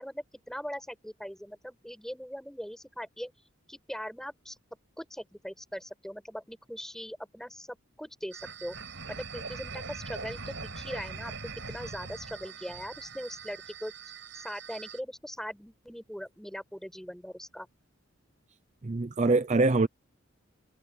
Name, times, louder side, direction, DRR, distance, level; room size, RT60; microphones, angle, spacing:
voice 1, 0.0-3.3 3.7-4.6 5.0-8.7 9.1-11.3 11.7-13.9 14.3-17.7, equal, ahead, 7.9 m, -40 dB
sound 1, 8.3-15.0, right 4 dB, 65° right, 4.9 m, -42 dB
voice 2, 18.8-19.9, right 3 dB, 35° right, 0.5 m, -24 dB
head